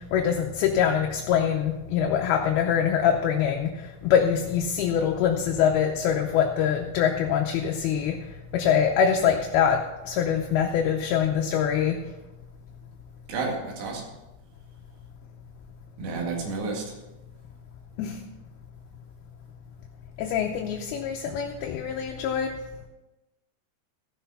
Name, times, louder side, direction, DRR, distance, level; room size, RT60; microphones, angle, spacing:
voice 1, 0.1-3.7 4.0-8.2 8.5-9.8 10.1-12.0 18.0-18.2 20.2-22.5, left 8 dB, 75° left, 2 dB, 2.6 m, -24 dB
voice 2, 13.3-14.1 16.0-16.9, right 3 dB, 80° right, 0 dB, 4.1 m, -30 dB
14.5 x 6.2 x 5.5 m, 1.0 s
omnidirectional pair, 4.7 m